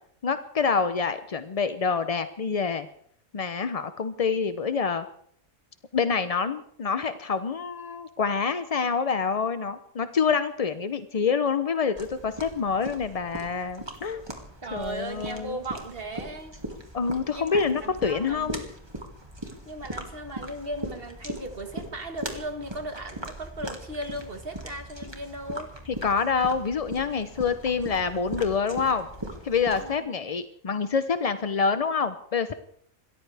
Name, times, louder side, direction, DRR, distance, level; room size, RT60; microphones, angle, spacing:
voice 1, 0.2-2.9 3.3-5.0 5.9-14.2 14.7-15.6 16.9-18.6 26.0-29.1 29.4-32.5, left 5 dB, 50° left, 11 dB, 0.4 m, -26 dB
sound 1, 12.0-30.0, right 1 dB, 20° right, 2.1 m, -40 dB
voice 2, 14.6-16.6 17.3-18.5 19.7-25.7 29.8-30.2, right 1 dB, 40° right, 6 dB, 1.8 m, -37 dB
27.0 x 14.0 x 3.4 m, 0.63 s
omnidirectional pair, 1.5 m